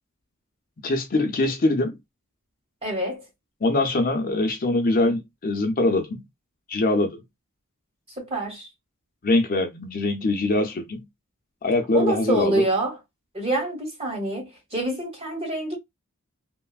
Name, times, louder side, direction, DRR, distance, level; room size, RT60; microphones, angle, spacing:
voice 1, 0.8-2.0 3.6-6.2 6.7-7.2 9.2-11.1 11.6-12.6, left 2 dB, 40° left, 0.5 m, -23 dB
voice 2, 2.8-3.2 8.2-8.7 11.9-13.0 13.3-15.8, right 1 dB, 30° right, 1.2 m, -26 dB
3.1 x 2.0 x 2.3 m
head